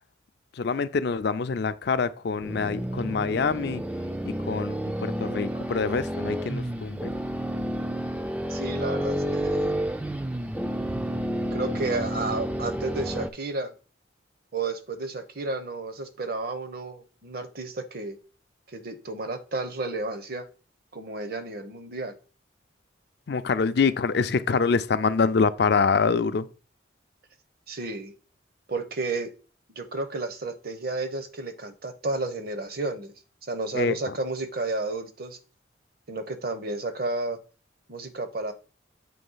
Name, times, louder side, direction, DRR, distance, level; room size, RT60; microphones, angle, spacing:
voice 1, 0.6-3.8 4.5-7.1 23.3-26.5 33.7-34.0, left 5 dB, 55° left, 0.4 m, -25 dB
sound 1, 2.4-13.3, equal, 5° right, 0.3 m, -30 dB
voice 2, 8.5-9.7 11.5-13.7 14.5-18.2 18.7-20.5 20.9-22.2 27.7-28.1 28.7-29.3 29.7-33.1 33.5-35.4 36.1-37.4 37.9-38.5, right 3 dB, 50° right, 0.8 m, -32 dB
7.7 x 3.2 x 5.5 m
head